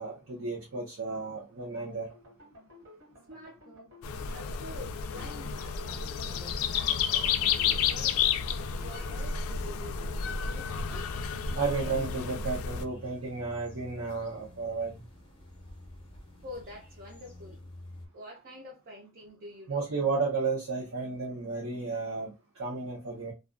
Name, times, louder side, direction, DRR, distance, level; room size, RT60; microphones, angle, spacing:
voice 1, 0.0-2.1 11.6-15.0 19.7-22.3 22.6-23.3, right 4 dB, 80° right, 0.7 m, -33 dB
sound 1, 2.0-10.5, left 1 dB, 65° right, 1.2 m, -54 dB
voice 2, 3.3-3.9 4.3-10.0 10.4-11.1 16.4-17.6 18.1-19.9, left 1 dB, 45° right, 0.5 m, -47 dB
sound 2, 4.0-12.8, left 7 dB, 90° left, 0.3 m, -31 dB
sound 3, 8.4-18.1, left 1 dB, 25° left, 0.6 m, -50 dB
2.3 x 2.2 x 2.4 m
head